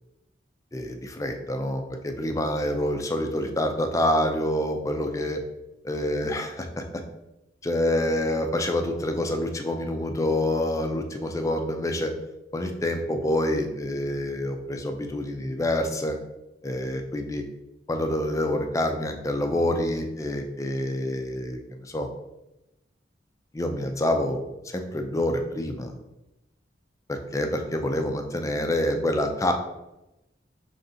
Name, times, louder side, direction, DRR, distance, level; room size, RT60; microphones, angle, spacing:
voice 1, 0.7-5.4 5.8-6.8 7.6-12.1 12.5-16.2 16.6-17.4 17.9-22.1 23.5-26.0 27.1-29.5, left 1 dB, 15° left, 4 dB, 0.4 m, -27 dB
5.5 x 3.5 x 2.6 m, 0.94 s
head